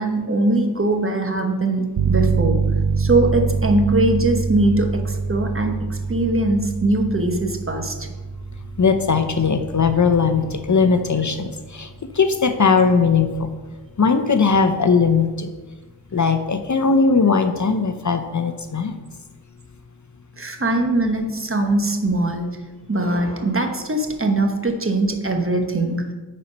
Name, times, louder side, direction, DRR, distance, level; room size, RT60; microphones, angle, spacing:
voice 1, 0.0-2.6 3.0-8.1 20.4-22.6 22.9-26.1, right 2 dB, 30° right, 4 dB, 1.2 m, -21 dB
sound 1, 2.0-12.5, right 5 dB, 60° right, 0.5 m, -25 dB
voice 2, 8.8-11.9 12.1-13.5 14.0-15.5 16.1-18.9, left 5 dB, 45° left, 8 dB, 0.7 m, -19 dB
9.2 x 4.4 x 5.3 m, 1.3 s
wide cardioid pair, 50°, 41 cm